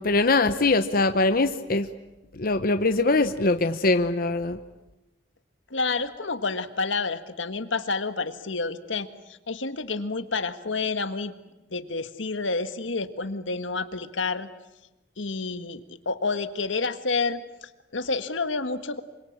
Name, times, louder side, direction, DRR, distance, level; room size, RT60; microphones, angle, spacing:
voice 1, 0.0-1.9 2.3-4.6, left 3 dB, 50° left, 9 dB, 0.9 m, -22 dB
voice 2, 5.7-11.3 11.7-14.5 15.2-19.0, left 4 dB, 85° left, 10 dB, 1.6 m, -29 dB
26.5 x 24.5 x 8.7 m, 0.99 s
head